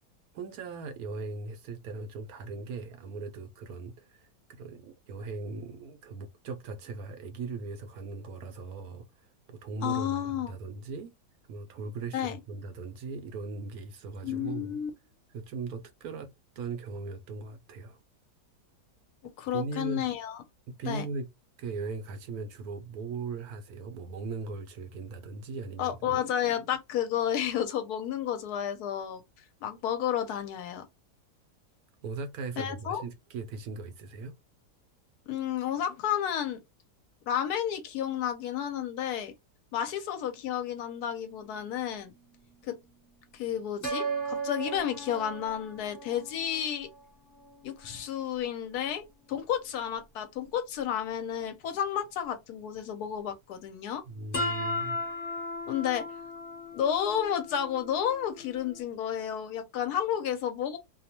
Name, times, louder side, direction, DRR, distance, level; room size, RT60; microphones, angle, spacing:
voice 1, 0.3-11.1 11.5-14.8 15.3-18.0 19.5-20.1 20.8-21.3 21.6-26.2 32.0-34.3 54.1-55.0, right 4 dB, 70° right, 0.9 m, -39 dB
voice 2, 9.8-10.5 12.1-12.4 14.2-14.9 19.4-20.4 20.9-21.0 25.8-29.2 29.6-30.9 32.6-33.0 35.3-36.6 37.3-39.3 39.7-42.1 42.7-42.8 43.3-46.9 47.6-49.0 49.3-54.0 55.7-56.1 56.7-60.8, left 9 dB, 70° left, 1.0 m, -31 dB
sound 1, 41.4-41.5 43.8-47.0 47.5-47.6 54.3-58.8, equal, 35° left, 1.2 m, -36 dB
2.8 x 2.0 x 2.7 m
omnidirectional pair, 1.8 m